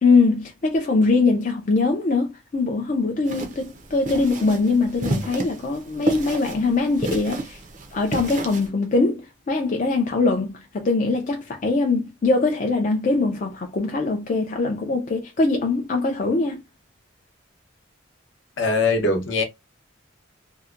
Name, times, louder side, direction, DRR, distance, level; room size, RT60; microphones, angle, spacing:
voice 1, 0.0-7.6 7.9-16.6, left 3 dB, 40° left, 0.4 m, -22 dB
sound 1, 3.2-8.7, right 2 dB, 40° right, 0.4 m, -31 dB
voice 2, 18.6-19.4, left 3 dB, 60° left, 0.7 m, -21 dB
2.6 x 2.1 x 2.4 m
head